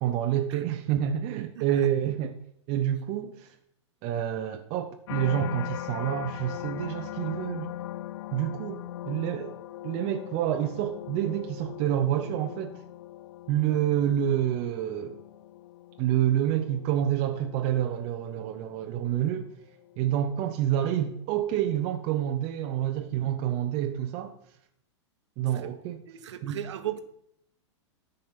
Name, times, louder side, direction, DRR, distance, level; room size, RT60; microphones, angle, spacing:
voice 1, 0.0-2.3 2.7-3.5 4.0-7.7 8.3-9.5 9.8-12.8 13.5-15.2 16.0-19.5 20.0-24.3 25.4-26.0 26.4-26.6, right 11 dB, 40° right, 1.0 m, -28 dB
voice 2, 1.5-1.9 25.4-25.7 26.1-27.0, right 11 dB, 70° right, 1.3 m, -37 dB
sound 1, 5.1-20.3 20.8-21.2, left 13 dB, 65° left, 0.5 m, -40 dB
13.5 x 5.4 x 5.8 m
hypercardioid pair, 120°, 15 cm